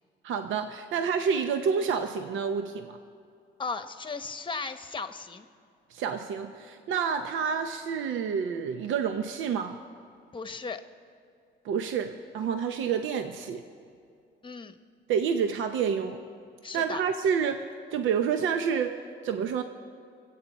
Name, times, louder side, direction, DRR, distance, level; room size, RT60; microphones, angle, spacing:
voice 1, 0.2-3.0 5.9-9.8 11.6-13.6 15.1-16.2 16.7-17.6 17.9-19.6, right 6 dB, 80° right, 7 dB, 0.8 m, -28 dB
voice 2, 3.6-5.5 10.3-10.8 14.4-14.8 16.6-17.0, left 4 dB, 25° left, 9 dB, 1.0 m, -36 dB
26.0 x 8.7 x 4.2 m, 2.4 s
cardioid pair, 90°, 20 cm